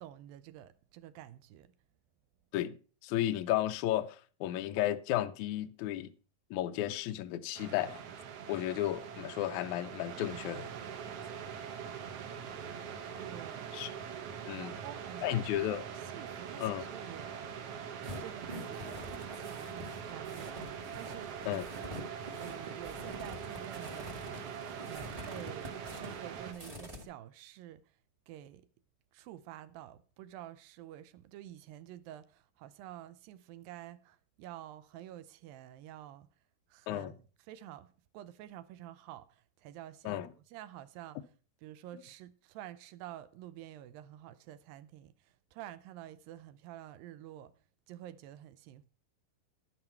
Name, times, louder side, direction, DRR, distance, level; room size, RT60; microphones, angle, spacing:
voice 1, 0.0-1.7 13.2-13.8 14.5-15.5 16.0-17.5 18.2-21.8 22.4-24.4 24.8-27.9 28.3-28.7 29.1-36.3 36.7-37.2 37.5-41.2 41.6-47.5 47.9-48.9, right 12 dB, 80° right, 2.3 m, -49 dB
voice 2, 3.0-6.1 6.5-8.0 8.5-10.7 13.7-13.9 14.5-14.7 15.2-15.8 16.6-16.9 21.5-21.6 36.9-37.1 40.0-40.3, left 13 dB, 80° left, 1.7 m, -33 dB
sound 1, 7.5-26.5, right 7 dB, 65° right, 1.5 m, -43 dB
sound 2, 18.0-27.0, equal, 25° right, 0.8 m, -46 dB
11.0 x 9.6 x 4.4 m
omnidirectional pair, 4.2 m